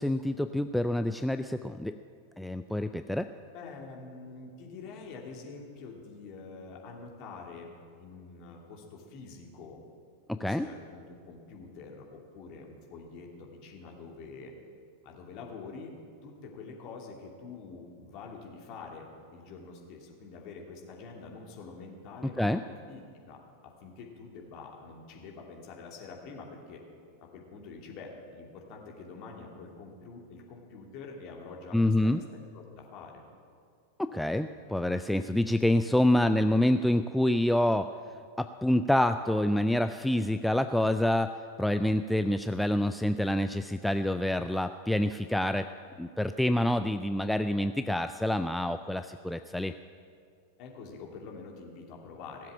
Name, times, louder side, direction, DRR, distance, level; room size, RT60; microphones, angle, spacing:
voice 1, 0.0-2.0 2.4-3.3 10.3-10.7 22.4-22.6 31.7-32.2 34.0-37.9 38.4-41.3 41.6-45.7 46.0-49.7, left 1 dB, 5° left, 9 dB, 0.4 m, -27 dB
voice 2, 3.5-9.8 10.4-14.5 15.0-15.9 16.2-26.8 27.2-32.2 32.5-33.2 50.6-52.5, left 4 dB, 40° left, -1 dB, 2.7 m, -46 dB
17.0 x 7.6 x 8.7 m, 2.3 s
figure-of-eight pair, 90°, 0 cm